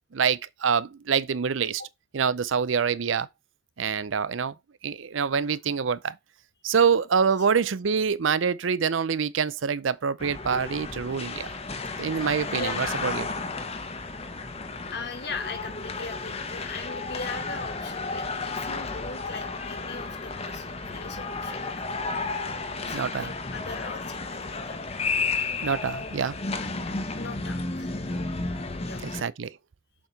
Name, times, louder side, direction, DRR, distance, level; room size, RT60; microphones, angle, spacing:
voice 1, 0.1-1.8 2.1-3.3 3.8-4.5 4.8-6.2 6.6-11.5 12.0-13.3 22.9-23.3 25.6-26.4 29.0-29.5, right 6 dB, 85° right, 0.6 m, -26 dB
sound 1, 10.2-29.2, left 3 dB, 35° left, 1.1 m, -33 dB
voice 2, 12.5-13.2 14.9-21.7 22.0-22.3 22.8-24.8 25.5-25.6 27.1-28.0 28.8-29.3, left 4 dB, 60° left, 2.1 m, -40 dB
7.2 x 5.7 x 4.1 m
head